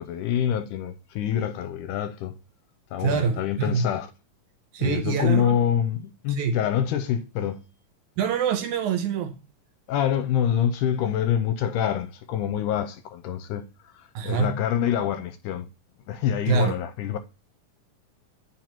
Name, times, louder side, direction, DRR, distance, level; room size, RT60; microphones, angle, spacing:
voice 1, 0.0-2.4 2.9-4.1 4.8-7.6 9.9-15.7 16.1-17.2, left 9 dB, 80° left, 2.0 m, -26 dB
voice 2, 3.0-3.9 4.7-5.6 6.3-6.6 8.2-9.4 14.2-14.6 16.5-16.8, right 6 dB, 75° right, 1.9 m, -25 dB
8.9 x 4.6 x 2.9 m
omnidirectional pair, 3.9 m